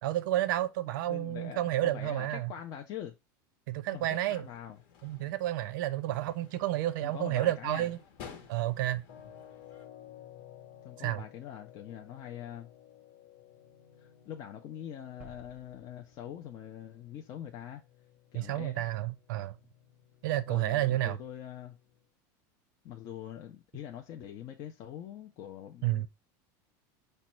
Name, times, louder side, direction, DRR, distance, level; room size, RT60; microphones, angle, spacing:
voice 1, 0.0-2.5 3.7-4.4 5.0-8.0 8.5-9.0 11.0-11.2 18.3-19.6 20.2-21.2 25.8-26.1, right 14 dB, 85° right, 0.5 m, -30 dB
voice 2, 1.1-3.1 3.9-4.8 7.0-7.9 10.8-12.7 14.0-17.8 18.3-18.8 20.5-21.8 22.8-26.1, left 10 dB, 40° left, 0.5 m, -44 dB
sound 1, 3.9-9.9, left 7 dB, 55° left, 0.9 m, -54 dB
sound 2, 9.1-22.1, left 10 dB, 85° left, 0.9 m, -56 dB
sound 3, 15.2-17.3, right 4 dB, 15° right, 0.7 m, -57 dB
5.0 x 2.2 x 4.2 m
supercardioid pair, 155°, 10 cm